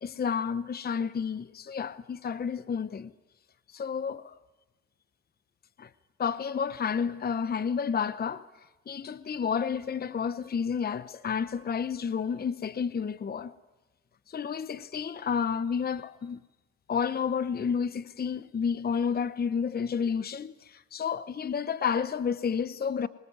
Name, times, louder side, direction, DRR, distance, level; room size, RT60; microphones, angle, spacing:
voice 1, 0.0-3.1 3.7-4.3 5.8-5.9 6.2-8.5 8.9-13.5 14.3-16.4 16.9-23.1, left 6 dB, 30° left, 0.8 m, -30 dB
24.0 x 21.0 x 9.6 m
cardioid pair, 90°, 30 cm